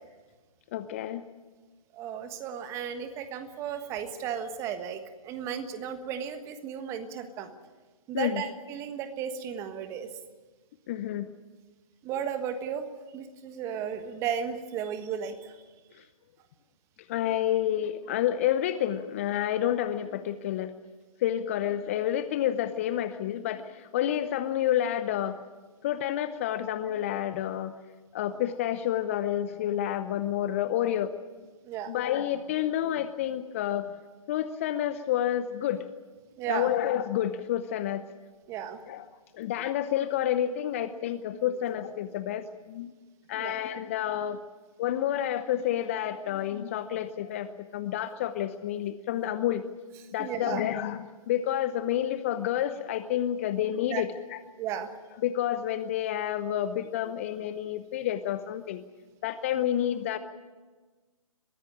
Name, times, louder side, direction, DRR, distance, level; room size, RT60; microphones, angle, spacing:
voice 1, 0.7-1.2 8.1-8.4 10.9-11.3 17.1-20.7 21.2-25.4 25.8-27.7 28.1-31.1 31.9-33.9 34.3-35.8 36.5-38.0 38.9-39.0 39.4-42.9 43.3-44.4 44.8-49.6 50.1-54.4 55.2-58.8 59.2-60.2, left 11 dB, 25° left, 12 dB, 0.7 m, -29 dB
voice 2, 1.9-7.5 8.1-10.1 12.0-12.8 13.1-15.6 31.6-32.0 36.4-36.7 38.5-38.8 43.3-43.6 50.2-50.7 53.9-54.0 54.6-54.9 59.5-59.6, right 8 dB, 15° right, 9 dB, 1.4 m, -34 dB
22.0 x 15.5 x 10.0 m, 1.3 s
figure-of-eight pair, 140°, 18 cm